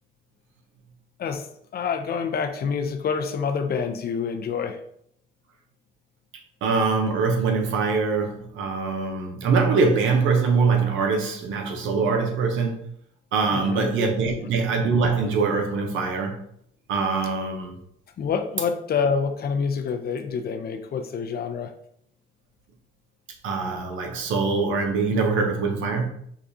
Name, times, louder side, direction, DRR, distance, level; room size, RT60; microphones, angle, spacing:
voice 1, 1.7-4.8 13.5-13.9 14.2-14.5 18.2-21.7, left 6 dB, 50° left, 0.5 m, -27 dB
voice 2, 6.6-12.8 13.3-16.4 16.9-17.7 23.4-26.1, right 4 dB, 80° right, 0.7 m, -23 dB
4.8 x 2.3 x 2.6 m
cardioid pair, 90°, 20 cm